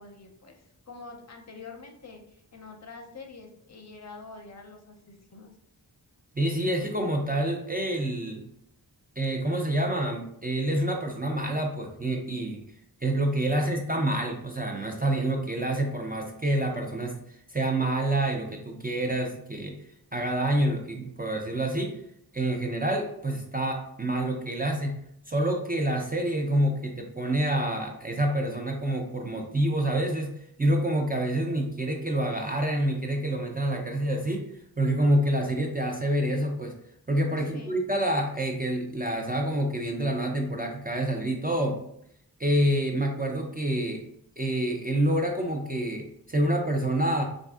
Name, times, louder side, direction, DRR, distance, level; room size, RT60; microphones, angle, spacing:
voice 1, 0.0-5.5 13.5-13.8 37.4-37.8, left 4 dB, 45° left, 3 dB, 0.5 m, -46 dB
voice 2, 6.4-8.4 9.2-12.6 13.0-17.2 17.5-19.7 20.1-22.0 22.3-25.0 25.3-30.3 30.6-34.5 34.8-36.7 37.1-41.8 42.4-44.0 44.4-47.2, right 1 dB, 25° right, 1 dB, 0.3 m, -27 dB
3.4 x 2.5 x 2.3 m, 0.72 s
wide cardioid pair, 60°, 39 cm